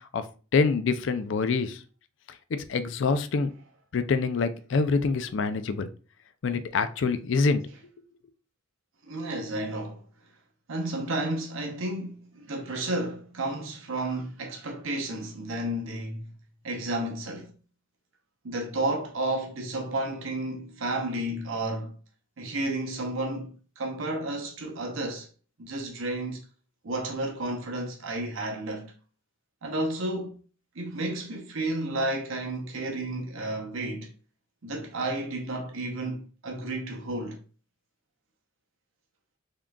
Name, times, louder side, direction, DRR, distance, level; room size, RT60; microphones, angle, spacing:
voice 1, 0.5-1.8 2.5-3.5 3.9-5.9 6.4-7.6, left 4 dB, 65° left, 0.4 m, -25 dB
voice 2, 9.0-10.0 10.7-16.3 16.6-17.5 18.4-21.9 22.4-25.3 25.6-26.4 26.8-28.9 29.6-30.4 30.7-34.1 34.6-37.4, right 1 dB, 90° right, 0.8 m, -32 dB
3.6 x 3.6 x 2.3 m
head